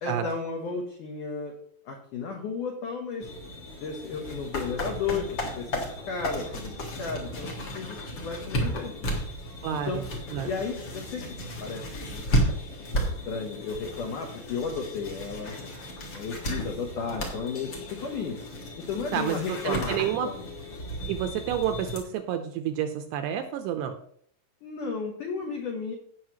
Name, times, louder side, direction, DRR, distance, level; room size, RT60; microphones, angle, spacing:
voice 1, 0.0-1.6 1.8-3.3 3.8-9.2 9.7-10.1 10.4-12.2 12.8-13.0 13.3-15.6 15.9-18.4 18.8-20.4 24.6-25.9, left 5 dB, 90° left, 1 dB, 1.8 m, -34 dB
sound 1, 3.2-22.0, equal, 65° left, 1.1 m, -34 dB
voice 2, 9.6-10.0 10.3-10.5 19.1-20.3 21.1-23.9, right 9 dB, 80° right, 7 dB, 2.5 m, -29 dB
17.0 x 6.2 x 3.0 m, 0.62 s
omnidirectional pair, 5.3 m